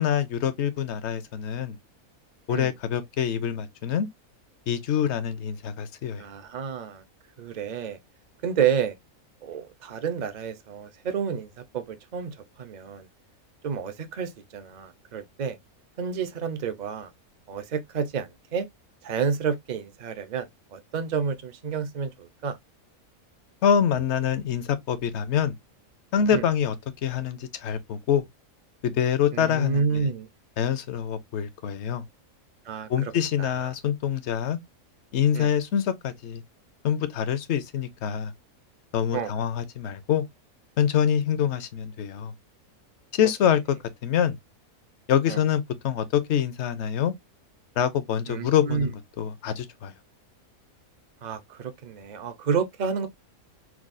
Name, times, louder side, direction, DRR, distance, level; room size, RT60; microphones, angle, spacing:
voice 1, 0.0-1.8 2.5-4.1 4.7-6.2 23.6-25.6 26.1-26.7 27.0-28.2 28.8-30.1 30.6-32.0 32.9-34.6 35.1-36.4 36.8-38.3 38.9-40.2 40.8-42.3 43.1-43.8 44.0-44.4 45.1-47.1 47.8-49.9, left 8 dB, 60° left, 0.8 m, -25 dB
voice 2, 6.2-7.0 7.4-8.0 8.4-9.0 9.4-13.1 13.6-15.6 16.0-17.1 17.5-18.7 19.0-22.6 26.3-26.4 29.3-30.3 32.7-33.1 33.4-33.7 35.3-35.5 39.1-39.3 45.3-45.4 48.3-48.9 51.2-53.1, right 6 dB, 50° right, 0.5 m, -30 dB
5.9 x 2.3 x 2.5 m
omnidirectional pair, 1.5 m